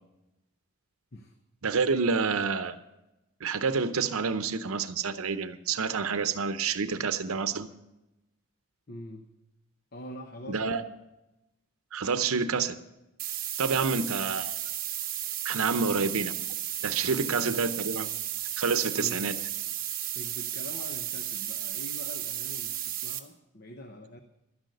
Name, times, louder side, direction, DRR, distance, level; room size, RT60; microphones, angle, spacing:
voice 1, 1.6-2.8 3.4-7.7 10.5-10.8 11.9-12.8 13.6-14.6 15.4-16.3 16.8-18.1 18.6-19.4, right 5 dB, 90° right, 11 dB, 0.7 m, -28 dB
voice 2, 8.9-9.3 9.9-10.9 13.7-14.1 15.6-16.1 17.4-17.7 18.9-19.6 20.1-24.2, left 1 dB, 45° left, 6 dB, 0.9 m, -44 dB
sound 1, 13.2-23.2, right 11 dB, 40° right, 1.1 m, -34 dB
12.5 x 10.5 x 6.5 m, 0.94 s
head